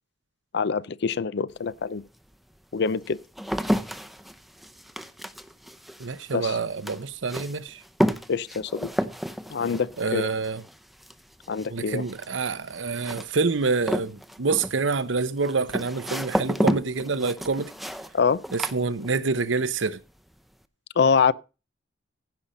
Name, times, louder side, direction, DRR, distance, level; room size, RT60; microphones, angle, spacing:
voice 1, 0.5-2.0 2.7-3.2 6.3-6.6 8.3-8.9 9.5-10.3 11.5-12.0 18.1-18.4 21.0-21.3, left 5 dB, 65° left, 0.5 m, -25 dB
sound 1, 1.5-1.6 2.3-19.5 19.8-20.3, equal, ahead, 0.6 m, -31 dB
voice 2, 6.0-7.8 10.0-10.6 11.7-17.7 18.5-20.0, right 4 dB, 85° right, 0.8 m, -27 dB
15.5 x 5.7 x 5.1 m
head